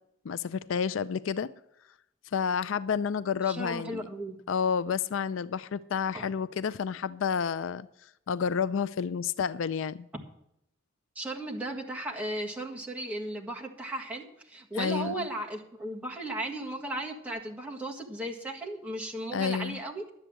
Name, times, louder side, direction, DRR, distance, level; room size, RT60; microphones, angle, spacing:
voice 1, 0.2-1.5 2.3-4.1 4.5-7.9 8.3-10.1 14.8-15.1 19.3-19.8, left 6 dB, 65° left, 15 dB, 0.4 m, -30 dB
voice 2, 3.4-4.4 6.1-6.2 11.2-20.0, right 1 dB, 5° right, -2 dB, 1.7 m, -36 dB
11.5 x 8.0 x 7.6 m, 0.81 s
head